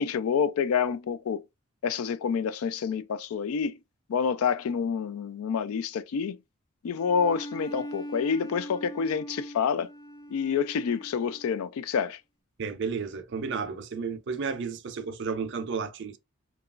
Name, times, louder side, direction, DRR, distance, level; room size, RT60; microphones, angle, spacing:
voice 1, 0.0-1.4 1.8-3.8 4.1-6.4 6.8-9.9 10.3-12.2, left 6 dB, 85° left, 0.3 m, -28 dB
Bowed string instrument, 7.0-11.7, equal, 20° left, 0.5 m, -41 dB
voice 2, 12.6-16.2, right 5 dB, 55° right, 0.5 m, -32 dB
2.9 x 2.3 x 2.3 m
head